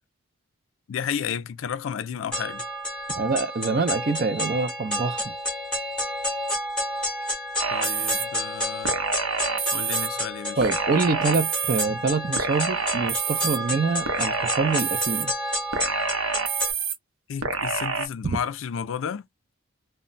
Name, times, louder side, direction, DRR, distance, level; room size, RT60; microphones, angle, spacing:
voice 1, 0.9-2.7 7.7-8.9 9.7-10.6 17.3-19.2, left 8 dB, 70° left, 0.4 m, -32 dB
sound 1, 2.3-16.7, equal, 5° left, 0.7 m, -30 dB
voice 2, 3.1-5.2 10.6-15.3 18.2-18.4, right 4 dB, 45° right, 0.4 m, -25 dB
sound 2, 7.6-8.3 8.8-10.1 10.6-11.8 12.4-13.6 14.1-15.2 15.7-17.0 17.4-18.1, right 5 dB, 80° right, 0.7 m, -27 dB
2.1 x 2.1 x 3.8 m
head